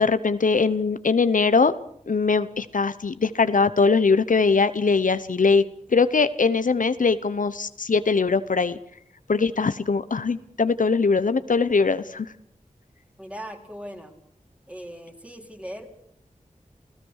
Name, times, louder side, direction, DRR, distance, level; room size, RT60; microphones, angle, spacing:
voice 1, 0.0-1.7 2.1-5.6 5.9-8.8 9.3-12.3, left 4 dB, 75° left, 13 dB, 0.8 m, -21 dB
voice 2, 13.2-14.1 14.7-15.9, equal, 10° right, 3 dB, 3.9 m, -39 dB
28.5 x 17.0 x 6.4 m, 0.68 s
wide cardioid pair, 55°, 14 cm